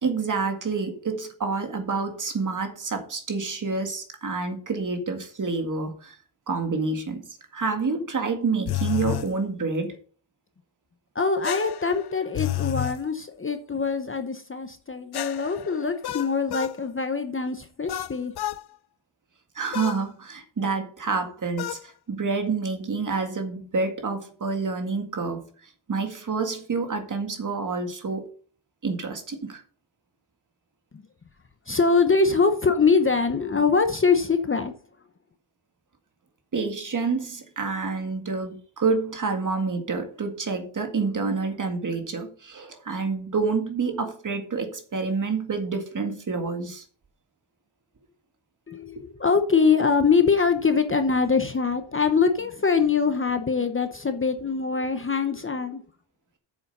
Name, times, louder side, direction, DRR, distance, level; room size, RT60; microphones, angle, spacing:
voice 1, 0.0-6.2 6.5-10.0 19.6-28.2 28.8-29.6 36.5-46.8 49.0-49.1, right 4 dB, 40° right, 2.0 m, -28 dB
sound 1, 8.7-9.3 11.4-13.0 15.1-16.8 17.9-18.6 19.7-20.0 21.6-21.8, left 14 dB, 55° left, 0.5 m, -30 dB
voice 2, 11.1-18.3 31.7-34.7 48.7-55.8, left 5 dB, 25° left, 0.8 m, -23 dB
8.6 x 7.2 x 5.5 m
wide cardioid pair, 155°, 49 cm